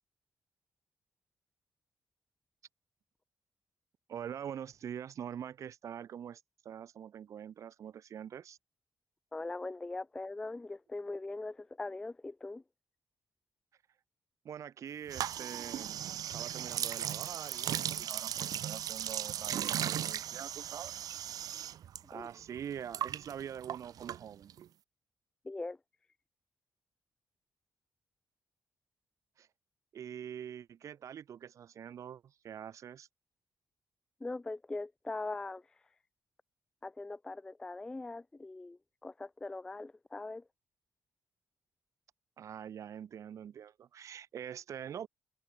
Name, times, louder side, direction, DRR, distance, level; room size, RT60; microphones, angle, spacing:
voice 1, 4.1-8.6 14.4-15.9 16.3-20.9 22.1-24.5 29.4-29.5 29.9-33.1 42.4-45.1, right 9 dB, 50° right, 0.7 m, -44 dB
voice 2, 9.3-12.6 22.1-22.3 25.4-25.8 34.2-35.8 36.8-40.4, left 2 dB, 10° left, 0.4 m, -41 dB
sound 1, 15.1-22.0 22.3-24.7, right 10 dB, 65° right, 1.4 m, -37 dB
cardioid pair, 155°, 7 cm